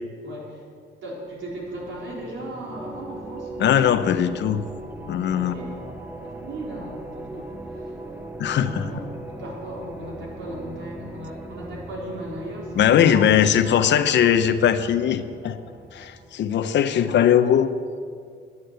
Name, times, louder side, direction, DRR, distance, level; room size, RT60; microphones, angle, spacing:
voice 1, 0.2-0.6 1.0-4.0 5.3-5.8 6.2-8.0 8.7-13.3 13.6-14.1 16.8-17.2, right 1 dB, 65° right, -3 dB, 4.0 m, -37 dB
sound 1, 1.3-16.7, right 2 dB, 10° right, 0.7 m, -39 dB
voice 2, 3.6-4.7 5.1-5.6 8.4-8.9 12.8-15.6 15.9-17.7, left 9 dB, 60° left, 10 dB, 0.7 m, -20 dB
10.5 x 9.6 x 8.1 m, 2.2 s
cardioid pair, 140°, 21 cm